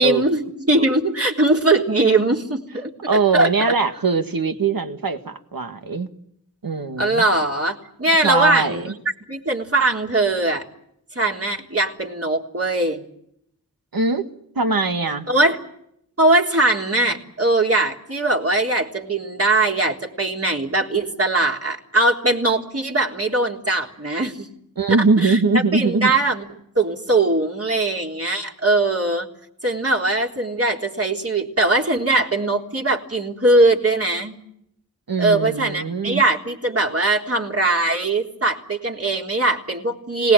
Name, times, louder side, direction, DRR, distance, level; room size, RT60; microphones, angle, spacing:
voice 1, 0.0-3.7 7.0-8.9 9.3-10.6 11.2-13.0 15.3-15.6 16.2-24.5 25.0-25.4 25.7-26.5 26.8-29.3 29.6-34.3 35.2-40.3, right 2 dB, 40° right, 1 dB, 3.7 m, -20 dB
voice 2, 3.1-6.1 6.6-7.2 8.2-8.8 13.9-14.2 14.6-15.3 24.8-26.1 35.1-36.2, right 4 dB, 80° right, 7 dB, 1.9 m, -21 dB
26.5 x 19.5 x 9.1 m, 0.74 s
wide cardioid pair, 70°, 35 cm